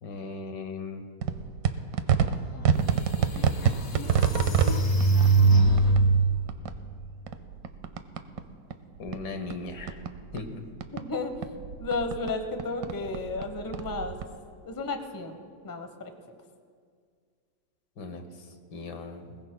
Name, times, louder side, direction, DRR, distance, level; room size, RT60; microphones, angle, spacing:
voice 1, 0.0-1.0 9.0-10.0 10.3-10.7 18.0-19.4, left 3 dB, 70° left, 6 dB, 1.8 m, -38 dB
sound 1, 1.2-8.5 8.7-11.1 11.3-14.3, right 7 dB, 75° right, 1.3 m, -28 dB
sound 2, 2.5-2.6 3.2-6.3, right 3 dB, 50° left, 1.8 m, -22 dB
voice 2, 10.9-14.2 14.6-16.1, left 3 dB, 20° left, 6 dB, 0.6 m, -33 dB
21.0 x 20.5 x 2.2 m, 2.1 s
omnidirectional pair, 2.0 m